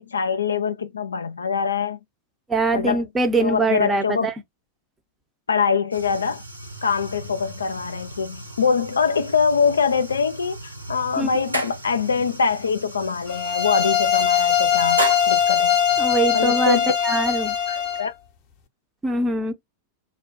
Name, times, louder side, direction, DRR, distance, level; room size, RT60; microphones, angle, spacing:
voice 1, 0.0-2.0 2.7-3.0 3.3-4.3 5.5-6.4 6.8-15.8 16.3-16.9 17.7-18.1, left 6 dB, 75° left, 0.3 m, -23 dB
voice 2, 2.5-4.3 11.2-11.3 16.0-16.8 17.0-17.5 19.0-19.5, right 3 dB, 15° right, 0.7 m, -22 dB
sound 1, 5.9-16.0, right 1 dB, 85° right, 0.8 m, -35 dB
sound 2, 13.3-18.1, left 9 dB, 40° left, 0.7 m, -21 dB
2.5 x 2.1 x 2.4 m
figure-of-eight pair, 90°, 0 cm